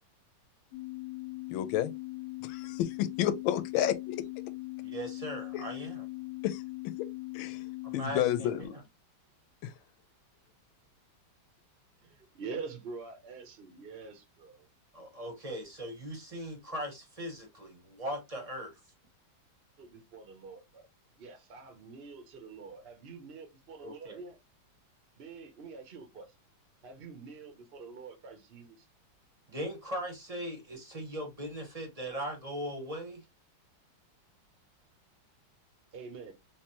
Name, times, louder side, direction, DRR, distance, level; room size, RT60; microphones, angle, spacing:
sound 1, 0.7-8.6, left 23 dB, 50° left, 0.4 m, -40 dB
voice 1, 1.5-1.9 2.4-4.2 5.5-5.6 6.4-6.6 7.0-7.1 7.3-7.6 7.9-8.7 9.6-9.7, left 11 dB, 85° left, 1.4 m, -30 dB
voice 2, 4.8-6.1 7.8-8.8 14.9-18.8 23.8-24.2 29.5-33.2, equal, 30° right, 0.7 m, -39 dB
voice 3, 12.0-14.7 19.8-20.9 21.2-24.4 25.2-26.3 26.8-28.9 35.9-36.3, right 4 dB, 60° right, 0.6 m, -46 dB
3.3 x 3.0 x 2.9 m
omnidirectional pair, 2.2 m